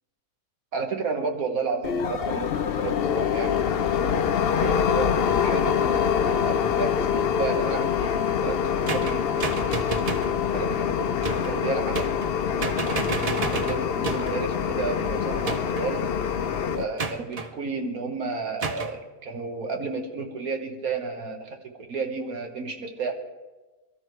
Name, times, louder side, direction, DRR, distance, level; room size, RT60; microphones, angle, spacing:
voice 1, 0.7-3.7 4.0-9.8 10.5-12.1 12.5-16.1 16.8-23.1, right 4 dB, 75° right, 4 dB, 1.9 m, -32 dB
sound 1, 1.8-16.8, left 8 dB, 55° left, 0.7 m, -25 dB
sound 2, 8.9-10.4 11.2-11.6 11.9-12.4 12.6-14.4 15.5-15.9 17.0-17.5 18.6-19.0, right 4 dB, 45° right, 0.5 m, -31 dB
23.0 x 13.5 x 3.2 m, 1.2 s
omnidirectional pair, 1.6 m